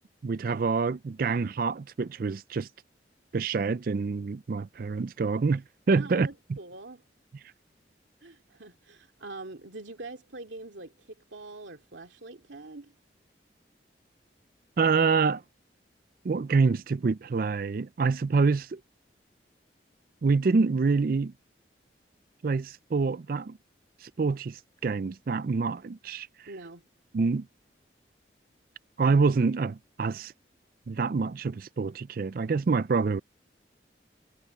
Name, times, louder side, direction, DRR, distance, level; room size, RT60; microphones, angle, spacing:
voice 1, 0.2-2.7 3.3-6.3 14.8-15.4 16.2-18.8 20.2-21.3 22.4-23.6 24.0-26.5 27.1-27.5 29.0-30.3 30.9-33.2, right 4 dB, 50° right, 0.4 m, -26 dB
voice 2, 5.9-7.0 8.2-12.9 26.5-26.8, right 2 dB, 85° right, 2.6 m, -44 dB
head